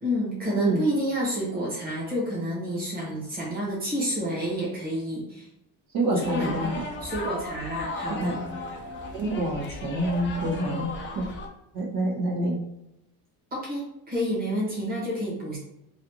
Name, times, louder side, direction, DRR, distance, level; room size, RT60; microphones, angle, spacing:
voice 1, 0.0-5.5 6.1-8.4 13.5-15.6, equal, 20° right, -6 dB, 1.4 m, -29 dB
voice 2, 5.9-6.8 8.1-8.6 9.1-11.2 11.7-12.5, right 1 dB, 60° right, -5 dB, 1.2 m, -27 dB
sound 1, 6.2-11.5, left 2 dB, 30° left, 0.4 m, -36 dB
3.2 x 2.6 x 2.9 m, 0.85 s
cardioid pair, 140°, 39 cm